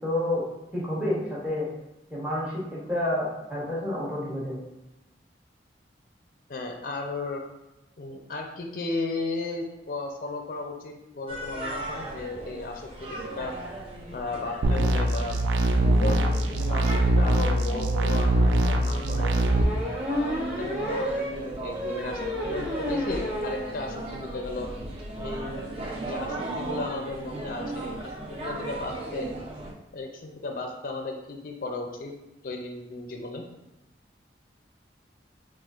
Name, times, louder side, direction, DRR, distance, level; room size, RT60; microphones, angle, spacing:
voice 1, 0.0-0.4 0.7-1.7 2.1-4.6, left 1 dB, 5° right, -7 dB, 0.9 m, -29 dB
voice 2, 6.5-7.4 8.0-13.5 14.1-15.4 16.0-19.3 20.0-24.7 25.2-25.6 26.0-29.3 29.9-32.1 32.4-33.4, left 2 dB, 50° left, 3 dB, 0.4 m, -35 dB
sound 1, 11.3-29.7, right 2 dB, 30° right, 0.5 m, -37 dB
sound 2, 14.6-19.6, right 1 dB, 85° right, 0.4 m, -23 dB
sound 3, 19.4-23.7 24.1-24.2 24.5-24.6 24.7-25.0, left 1 dB, 55° right, 1.3 m, -31 dB
5.8 x 2.4 x 2.3 m, 0.97 s
head